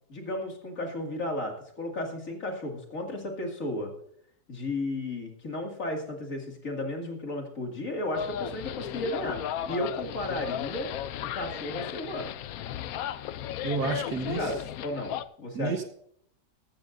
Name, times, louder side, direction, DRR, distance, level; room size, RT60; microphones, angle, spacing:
voice 1, 0.1-3.9 4.5-9.4 9.7-10.9 11.3-12.3 14.4-15.8, left 1 dB, 50° left, 1 dB, 2.7 m, -34 dB
sound 1, 8.1-15.2, left 10 dB, 70° left, 0.9 m, -35 dB
voice 2, 13.6-14.5 15.5-15.8, right 4 dB, 70° right, 5 dB, 1.9 m, -30 dB
14.5 x 13.0 x 2.6 m, 0.64 s
omnidirectional pair, 1.8 m